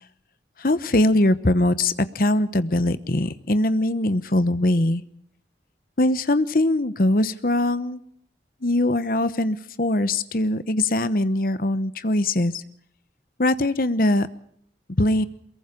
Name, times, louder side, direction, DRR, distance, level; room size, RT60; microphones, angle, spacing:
voice 1, 0.6-5.0 6.0-8.0 8.6-12.6 13.4-14.3 15.0-15.3, left 1 dB, 50° left, 14 dB, 1.0 m, -21 dB
23.0 x 22.0 x 5.2 m, 0.68 s
head